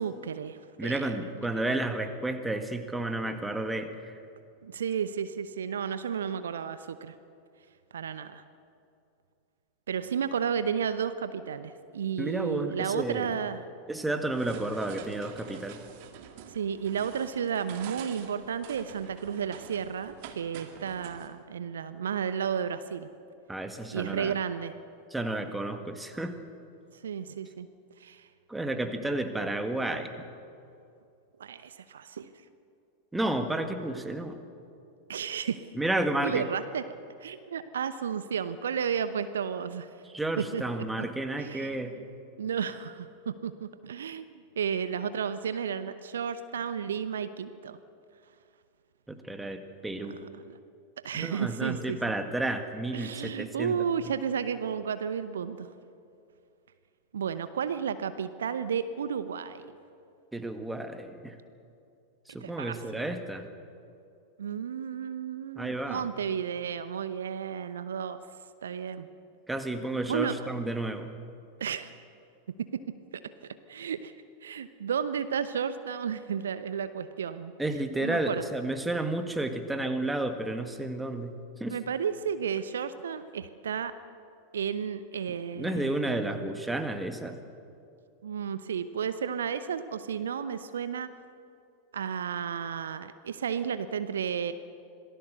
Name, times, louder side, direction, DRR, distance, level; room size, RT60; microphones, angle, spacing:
voice 1, 0.0-1.1 4.6-7.1 7.9-8.4 9.9-13.7 16.5-23.1 23.9-24.7 27.0-27.7 28.0-28.3 31.4-32.3 35.1-35.6 36.2-36.8 37.2-39.9 40.4-41.1 41.3-41.8 42.4-44.3 44.6-47.8 50.0-50.6 51.0-52.0 52.9-55.7 57.1-59.7 62.4-63.1 64.4-68.2 68.6-69.1 70.1-70.4 71.6-71.9 72.7-72.8 73.7-74.1 74.4-77.5 78.0-78.5 81.7-83.9 84.5-86.5 88.2-91.1 91.9-94.5, right 7 dB, 65° right, 12 dB, 0.8 m, -32 dB
voice 2, 0.8-4.1 12.2-13.4 13.9-15.8 23.5-24.3 25.1-26.3 28.5-30.1 33.1-34.4 35.8-36.5 40.1-42.0 49.1-50.2 51.1-53.8 60.3-61.4 62.3-63.5 65.6-66.1 69.5-71.2 77.6-81.8 85.6-87.4, right 2 dB, 5° right, 7 dB, 1.9 m, -31 dB
sound 1, 14.3-21.3, right 9 dB, 50° right, 2.0 m, -47 dB
26.5 x 18.5 x 6.8 m, 2.5 s
figure-of-eight pair, 90°, 0 cm